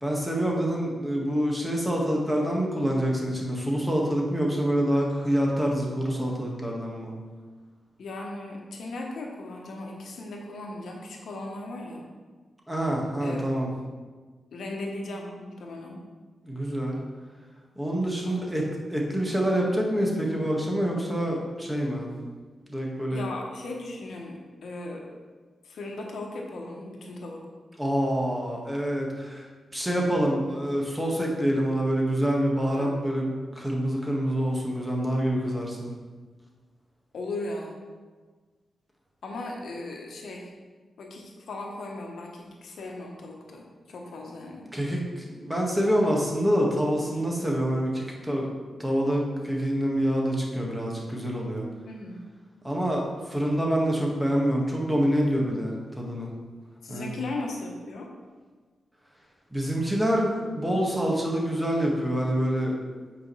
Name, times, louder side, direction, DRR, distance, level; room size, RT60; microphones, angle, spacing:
voice 1, 0.0-7.1 12.7-13.7 16.4-17.0 17.7-18.6 18.9-22.1 22.7-23.2 27.8-29.5 29.7-33.2 33.5-35.9 44.7-48.5 48.8-51.6 52.6-56.3 56.9-57.1 59.5-62.7, equal, 10° right, -2 dB, 1.7 m, -26 dB
voice 2, 8.0-12.0 13.2-13.4 14.5-16.0 18.2-18.5 23.1-25.0 25.6-27.4 32.8-33.0 37.1-37.8 39.2-40.5 41.0-44.7 51.8-52.2 56.8-58.1, left 2 dB, 80° left, 0 dB, 1.0 m, -37 dB
8.9 x 5.0 x 3.2 m, 1.4 s
cardioid pair, 65°, 0 cm